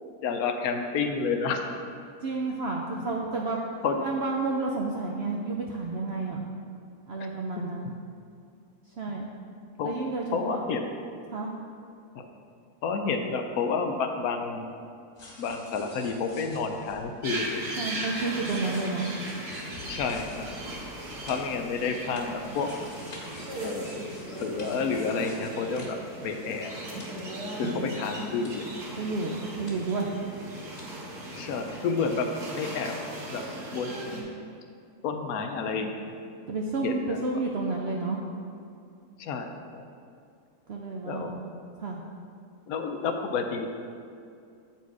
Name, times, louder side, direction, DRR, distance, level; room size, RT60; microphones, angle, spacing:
voice 1, 0.2-1.7 3.8-4.0 7.5-7.6 9.8-9.9 10.3-10.9 12.2-12.3 12.8-14.7 15.4-17.6 19.9-20.5 21.3-22.7 23.6-23.9 24.3-26.7 27.6-28.7 31.3-32.3 32.6-33.0 33.3-33.4 33.7-34.2 35.0-36.2 36.8-37.2 39.2-39.8 41.0-41.4 42.7-43.7, left 5 dB, 70° left, 5 dB, 1.0 m, -30 dB
voice 2, 2.2-3.6 4.0-6.5 7.1-7.9 9.0-9.3 9.8-10.6 11.3-11.5 17.8-19.1 29.0-30.1 36.5-38.2 40.7-41.5 41.8-42.0, right 3 dB, 65° right, -1 dB, 0.6 m, -31 dB
sound 1, 15.2-26.7 27.0-28.8 29.1-30.9 31.1-31.5, left 2 dB, 55° left, 2.0 m, -49 dB
sound 2, 17.2-34.2, right 1 dB, 85° right, 1.8 m, -37 dB
8.0 x 4.3 x 4.7 m, 2.4 s
omnidirectional pair, 1.7 m